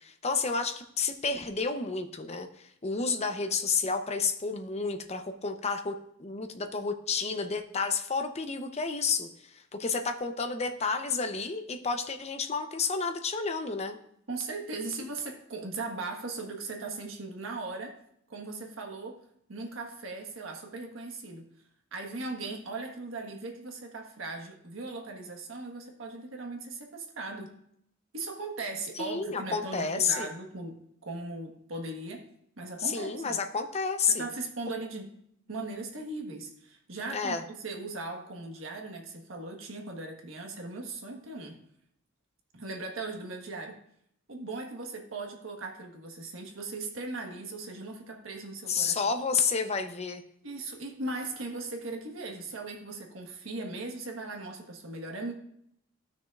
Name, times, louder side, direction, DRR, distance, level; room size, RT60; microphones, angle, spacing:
voice 1, 0.0-5.9 6.2-14.0 29.0-30.3 32.8-34.3 37.1-37.4 48.7-50.2, left 5 dB, 35° left, 7 dB, 0.7 m, -30 dB
voice 2, 14.3-18.0 18.3-19.2 19.5-21.5 21.9-27.5 28.1-32.3 32.6-33.4 34.1-35.1 35.5-41.6 42.5-43.8 44.3-48.9 50.4-55.3, right 3 dB, 75° right, 2 dB, 1.4 m, -38 dB
15.5 x 6.3 x 2.4 m, 0.72 s
head